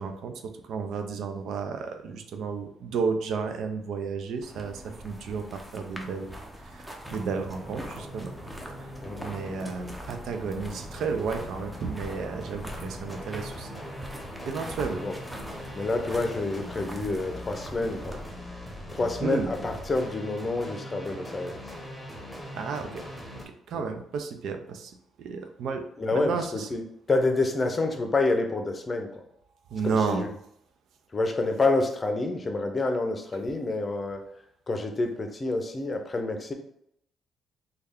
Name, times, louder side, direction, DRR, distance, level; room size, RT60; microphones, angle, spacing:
voice 1, 0.0-6.3 6.7-8.3 9.2-13.8 14.4-15.0 19.2-19.5 22.5-23.0 23.7-24.9 25.2-25.8 26.1-26.7 29.7-30.3, right 5 dB, 75° right, 7 dB, 0.4 m, -32 dB
sound 1, 4.4-18.2, right 1 dB, 10° right, 0.6 m, -43 dB
sound 2, 7.0-23.4, left 1 dB, 5° left, 1.0 m, -41 dB
voice 2, 9.0-9.4 14.9-15.1 15.7-18.2 18.9-21.6 23.7-23.8 26.0-26.8 27.1-29.1 29.8-30.3 31.1-34.2 34.7-36.5, left 2 dB, 30° left, 5 dB, 0.6 m, -28 dB
3.3 x 2.3 x 3.5 m, 0.73 s
cardioid pair, 90°, 0 cm